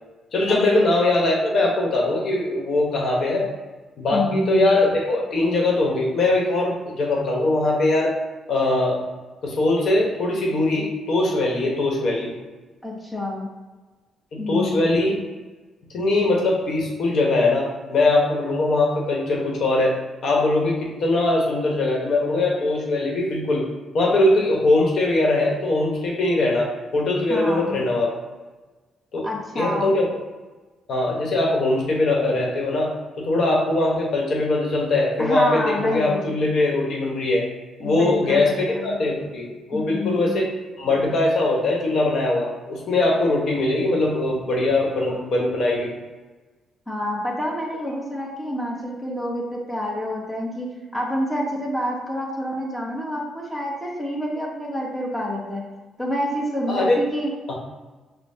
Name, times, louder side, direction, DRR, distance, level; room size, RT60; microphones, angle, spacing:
voice 1, 0.3-3.5 4.0-8.1 8.5-9.0 9.4-12.3 14.3-15.2 15.9-20.0 20.2-23.6 23.9-28.1 29.1-29.3 29.5-30.1 30.9-32.9 33.2-37.4 37.8-40.5 40.8-45.9 56.7-57.0 57.5-57.6, left 2 dB, 65° left, -1 dB, 1.1 m, -21 dB
voice 2, 4.1-4.7 12.8-13.5 14.4-14.8 27.3-27.8 29.2-29.9 35.2-36.3 37.8-39.0 39.7-40.4 46.9-55.6 56.0-57.3, left 1 dB, ahead, -3 dB, 1.2 m, -28 dB
6.4 x 2.2 x 2.8 m, 1.2 s
cardioid pair, 90°, 0 cm